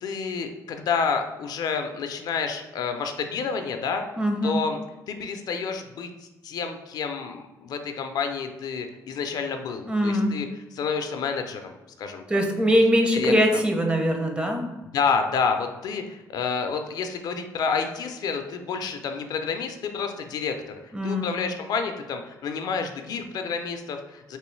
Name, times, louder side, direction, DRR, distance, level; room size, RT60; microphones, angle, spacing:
voice 1, 0.0-4.0 4.4-4.8 5.1-10.5 10.7-12.2 13.1-13.3 14.9-20.6 20.8-24.4, left 5 dB, 65° left, 6 dB, 0.4 m, -29 dB
voice 2, 4.2-4.6 9.9-10.4 12.3-14.7 20.9-21.3, equal, 15° right, 3 dB, 0.6 m, -22 dB
3.0 x 3.0 x 3.1 m, 1.0 s
cardioid pair, 90°, 7 cm